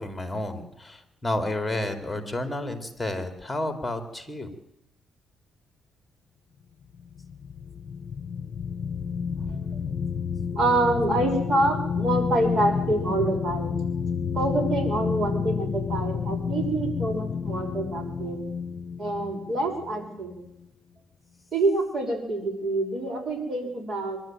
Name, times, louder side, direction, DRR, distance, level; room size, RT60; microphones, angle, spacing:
voice 1, 0.0-4.5 9.4-9.6, left 1 dB, 10° left, 7 dB, 3.1 m, -31 dB
sound 1, 6.9-20.6, left 6 dB, 55° left, 0.8 m, -30 dB
voice 2, 10.5-13.8 14.3-18.4 19.0-20.3 21.5-24.2, right 2 dB, 50° right, 3 dB, 6.0 m, -26 dB
24.5 x 12.0 x 9.2 m, 0.83 s
cardioid pair, 90°, 0 cm